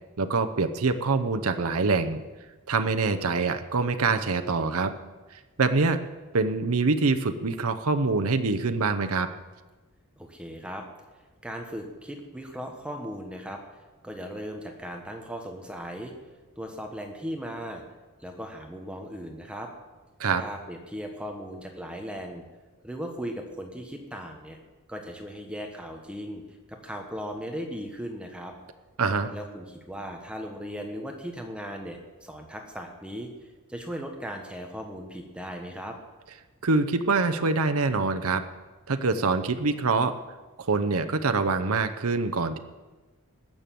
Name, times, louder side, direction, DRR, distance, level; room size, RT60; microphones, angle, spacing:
voice 1, 0.2-2.2 2.7-4.9 5.3-6.0 6.3-9.3 20.2-20.4 29.0-29.3 36.6-38.4 38.9-40.1 40.6-42.6, right 4 dB, 70° right, 9 dB, 0.8 m, -25 dB
voice 2, 10.2-10.9 11.4-16.1 16.6-17.8 18.2-19.7 20.4-22.4 22.8-24.6 24.9-26.4 26.7-28.5 29.3-33.3 33.7-36.0, equal, 5° right, 3 dB, 1.3 m, -37 dB
19.5 x 6.9 x 7.6 m, 1.2 s
head